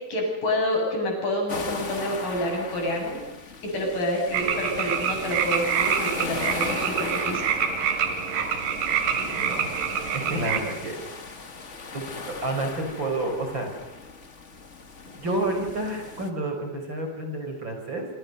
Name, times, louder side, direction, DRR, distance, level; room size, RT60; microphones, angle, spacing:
voice 1, 0.1-3.2 3.6-7.5, left 1 dB, 80° left, 0 dB, 9.5 m, -28 dB
sound 1, 1.5-16.3, left 4 dB, 30° left, 1.4 m, -38 dB
sound 2, 4.3-10.6, right 7 dB, 85° right, 4.1 m, -26 dB
voice 2, 9.1-9.7 10.1-11.0 11.9-13.7 15.1-18.1, right 2 dB, 35° right, 4 dB, 5.2 m, -30 dB
27.0 x 25.0 x 6.8 m, 1.0 s
omnidirectional pair, 3.8 m